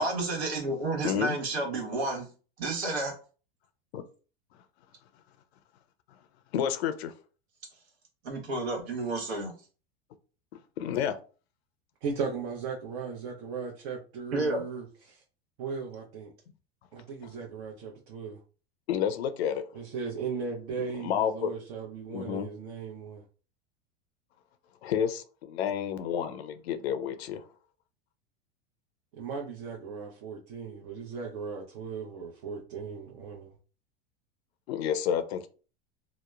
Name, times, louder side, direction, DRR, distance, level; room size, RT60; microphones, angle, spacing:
voice 1, 0.0-2.3 2.6-3.1 8.2-9.5 14.3-14.6, right 2 dB, 85° right, 1.1 m, -30 dB
voice 2, 1.0-1.4 3.9-4.0 6.5-7.1 10.8-11.2 18.9-19.6 21.0-21.5 22.1-22.5 24.8-27.4 34.7-35.5, left 9 dB, 80° left, 0.5 m, -30 dB
voice 3, 12.0-15.2 15.6-16.3 16.9-18.4 19.7-23.2 29.1-33.5, right 5 dB, 60° right, 0.7 m, -37 dB
2.9 x 2.0 x 2.2 m
hypercardioid pair, 105°, 31 cm